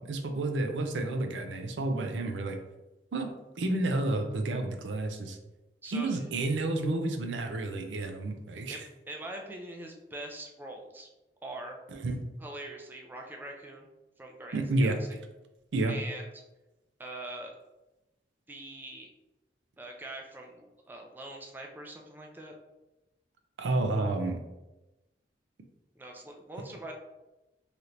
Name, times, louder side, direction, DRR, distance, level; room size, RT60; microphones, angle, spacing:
voice 1, 0.0-2.6 3.1-3.3 3.6-5.4 5.9-8.8 12.0-12.2 14.5-15.0 15.7-15.9 23.6-24.4, right 2 dB, 90° right, 5 dB, 0.5 m, -30 dB
voice 2, 5.8-6.2 8.6-11.1 11.4-11.8 12.4-13.9 14.2-15.2 15.9-16.4 17.0-17.6 18.5-19.1 19.8-22.5 26.0-26.9, right 1 dB, 10° right, 1 dB, 0.3 m, -43 dB
3.3 x 2.8 x 2.5 m, 1.0 s
head